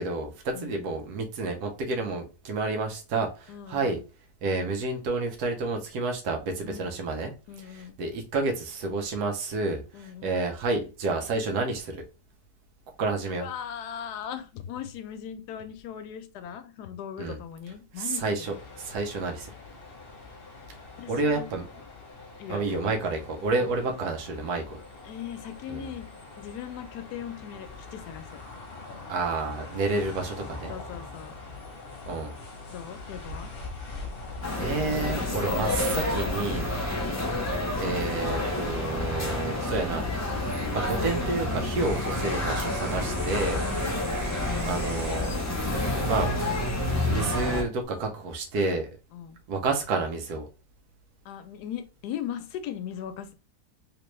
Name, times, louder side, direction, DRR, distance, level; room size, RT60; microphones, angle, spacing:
voice 1, 0.0-4.0 4.4-7.3 7.7-12.0 13.0-13.5 17.2-17.4 18.0-19.5 21.1-21.6 22.5-24.6 25.7-25.9 29.1-30.7 32.1-32.3 34.6-36.7 37.8-40.0 40.7-43.6 44.6-45.4 46.0-46.3 47.1-48.9 49.5-50.5, right 3 dB, 75° right, 1.3 m, -30 dB
voice 2, 3.5-4.0 6.6-7.1 7.5-8.0 9.9-10.4 13.3-18.6 21.0-21.8 22.4-22.9 25.0-26.1 26.4-28.2 30.7-31.4 32.7-33.5 43.7-44.1 49.1-49.4 51.2-53.3, left 9 dB, 75° left, 1.1 m, -39 dB
sound 1, 18.4-36.1, left 3 dB, 45° left, 0.9 m, -43 dB
sound 2, 34.4-47.6, left 1 dB, 20° left, 0.4 m, -29 dB
sound 3, 41.8-46.9 47.4-47.8, right 1 dB, ahead, 1.4 m, -44 dB
3.2 x 3.0 x 3.1 m
omnidirectional pair, 1.8 m